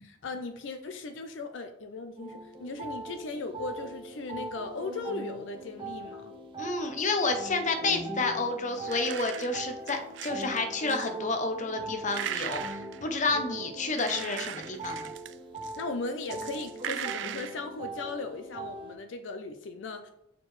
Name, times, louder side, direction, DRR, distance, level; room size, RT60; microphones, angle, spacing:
voice 1, 0.0-6.3 15.8-20.1, left 3 dB, 75° left, 7 dB, 0.5 m, -37 dB
sound 1, 2.2-18.9, right 2 dB, 25° right, 0.9 m, -41 dB
voice 2, 6.6-15.1, left 3 dB, 40° left, 6 dB, 0.7 m, -30 dB
sound 2, 8.9-10.6 10.9-11.1 12.1-13.4 13.9-15.8 16.3-17.6, right 10 dB, 70° right, 0.4 m, -38 dB
6.7 x 4.5 x 3.2 m, 0.83 s
head